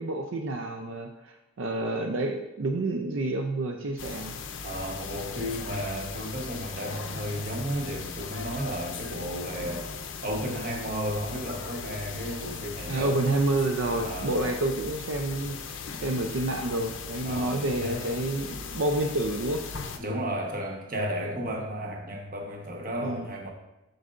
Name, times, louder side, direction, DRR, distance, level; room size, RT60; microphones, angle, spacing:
voice 1, 0.0-4.3 12.9-19.7 23.0-23.3, right 2 dB, 80° right, 4 dB, 0.5 m, -29 dB
sound 1, 4.0-20.0, left 5 dB, 75° left, 0.6 m, -38 dB
voice 2, 4.6-9.9 10.2-13.1 14.0-14.5 17.2-18.1 20.0-23.5, equal, 45° right, 1 dB, 1.0 m, -33 dB
7.8 x 6.5 x 2.5 m, 0.99 s
head